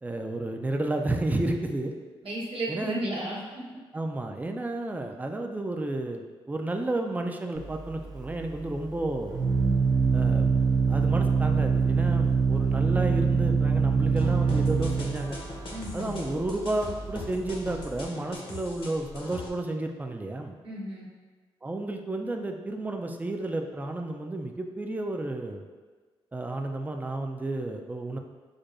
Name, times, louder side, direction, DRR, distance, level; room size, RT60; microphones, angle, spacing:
voice 1, 0.0-1.9 2.7-3.1 3.9-9.5 10.1-15.4 15.9-20.6 21.6-25.7 26.3-28.2, right 2 dB, 15° right, 4 dB, 0.4 m, -32 dB
voice 2, 2.2-3.6 15.7-16.1 20.6-21.1, right 1 dB, 65° right, -5 dB, 1.2 m, -33 dB
Organ, 7.6-18.0, right 5 dB, 40° right, 0.8 m, -25 dB
sound 1, 14.2-19.5, left 2 dB, 55° left, 0.9 m, -41 dB
6.3 x 2.2 x 2.5 m, 1.4 s
cardioid pair, 65°, 10 cm